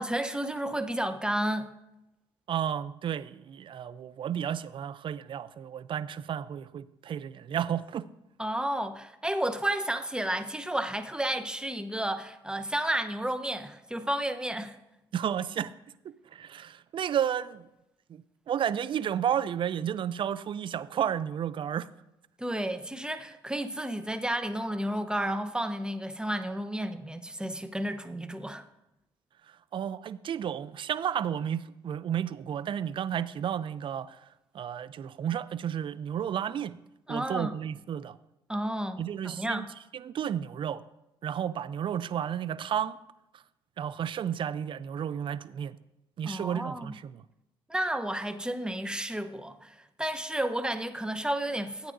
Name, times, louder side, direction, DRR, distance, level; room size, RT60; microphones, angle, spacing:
voice 1, 0.0-1.7 8.4-14.8 22.4-28.6 37.1-37.5 38.5-39.7 46.3-46.9 47.7-51.9, right 1 dB, 10° right, 0.8 m, -32 dB
voice 2, 2.5-8.1 15.1-15.7 16.0-17.7 18.1-21.9 29.7-34.2 34.5-36.8 37.1-38.2 39.0-39.7 39.9-40.8 41.2-43.0 43.3-43.4 43.8-45.8 46.2-47.2, right 9 dB, 55° right, 0.5 m, -32 dB
14.0 x 9.0 x 2.6 m
supercardioid pair, 70°, 10 cm